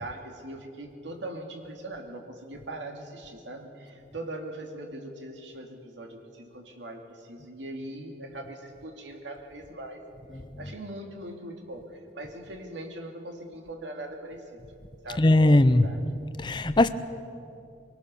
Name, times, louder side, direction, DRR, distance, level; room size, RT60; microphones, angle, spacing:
voice 1, 0.0-10.0 10.6-14.6 15.0-16.0, right 1 dB, 85° right, 2.5 m, -40 dB
voice 2, 15.2-15.9 16.4-16.9, left 1 dB, 25° left, 0.6 m, -19 dB
23.0 x 18.5 x 6.8 m
head